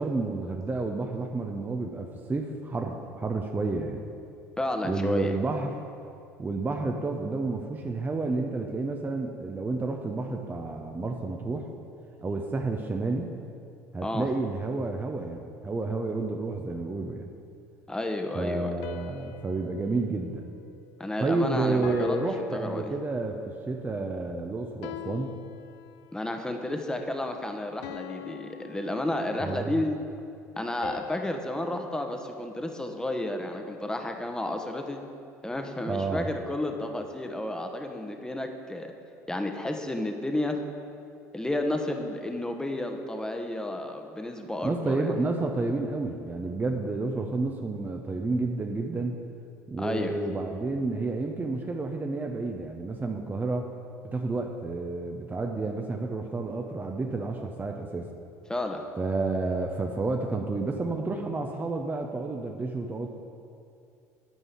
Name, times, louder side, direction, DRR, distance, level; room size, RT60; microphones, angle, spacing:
voice 1, 0.0-4.0 4.8-5.8 6.4-11.7 12.2-13.3 13.9-17.3 18.3-20.5 21.2-23.4 23.7-25.4 29.4-29.7 35.8-36.3 44.6-49.2 49.7-53.7 54.0-58.1 59.0-63.1, right 3 dB, 20° right, 3 dB, 0.8 m, -30 dB
voice 2, 4.6-5.3 14.0-14.3 17.9-18.7 21.0-22.2 22.5-22.9 26.1-30.0 30.6-35.0 35.4-38.9 39.3-40.6 41.3-45.1 49.8-50.2 58.5-58.8, left 1 dB, 10° left, 4 dB, 1.1 m, -31 dB
sound 1, 18.8-21.3 21.8-23.6 24.8-26.4 27.8-29.7 30.8-33.2, left 14 dB, 70° left, 0.4 m, -45 dB
9.2 x 5.4 x 8.2 m, 2.5 s
hypercardioid pair, 70°, 9 cm